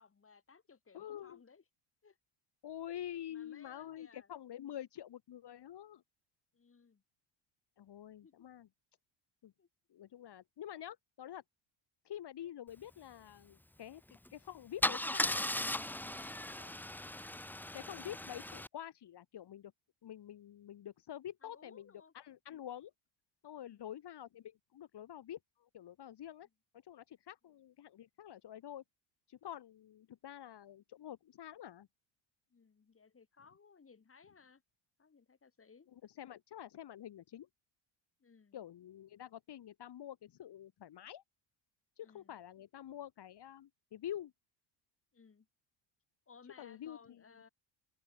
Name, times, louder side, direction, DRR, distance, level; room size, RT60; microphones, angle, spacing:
voice 1, 0.0-1.6 2.0-2.2 3.3-4.3 6.5-7.0 8.2-8.3 9.6-9.7 16.5-16.8 21.4-22.1 22.5-22.7 23.7-23.9 32.5-34.6 35.0-35.9 38.2-38.6 42.0-42.4 45.1-45.5 46.3-47.5, left 5 dB, 25° left, 7.1 m, -61 dB
voice 2, 0.9-1.4 2.6-6.0 7.8-8.7 9.4-9.5 9.9-11.4 12.0-14.0 14.3-15.4 17.7-19.7 20.0-22.9 23.4-26.5 26.7-28.8 29.3-31.9 35.9-37.5 38.5-41.2 42.0-44.3 46.6-47.2, left 11 dB, 50° left, 6.6 m, -47 dB
Car / Engine starting / Idling, 14.1-14.3 14.8-18.7, left 1 dB, 5° left, 0.9 m, -37 dB
open air
cardioid pair, 115°, 50 cm